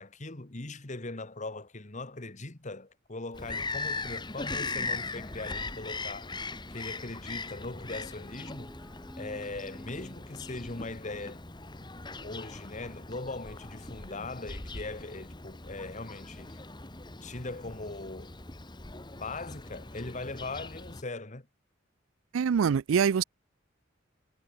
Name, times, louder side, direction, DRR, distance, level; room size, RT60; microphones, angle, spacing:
voice 1, 0.0-8.8 9.2-11.4 11.7-11.9 12.2-16.6 17.2-18.3 19.2-21.5, left 2 dB, 40° left, 1.6 m, -40 dB
Bird vocalization bird call bird song, 3.3-21.0, left 3 dB, 20° left, 1.9 m, -40 dB
sound 1, 7.8-11.6, equal, ahead, 1.0 m, -51 dB
voice 2, 22.3-23.2, right 7 dB, 80° right, 0.4 m, -24 dB
head